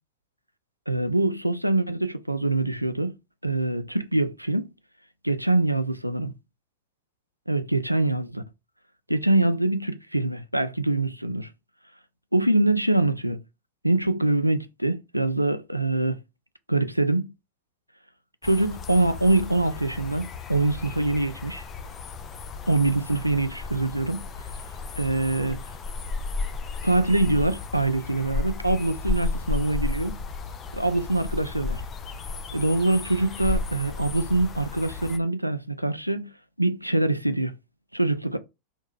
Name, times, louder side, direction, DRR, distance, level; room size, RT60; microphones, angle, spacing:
voice 1, 0.9-3.2 3.4-4.7 5.2-6.3 7.5-8.4 9.1-11.5 12.3-13.4 13.8-16.2 16.7-17.3 18.4-21.6 22.7-24.3 25.0-25.6 26.8-30.2 30.7-31.8 32.5-36.3 36.6-37.5 37.9-38.4, right 2 dB, 90° right, 0.3 m, -24 dB
sound 1, 18.4-35.2, left 4 dB, 25° left, 0.4 m, -34 dB
3.5 x 2.1 x 3.3 m
figure-of-eight pair, 90°, 0 cm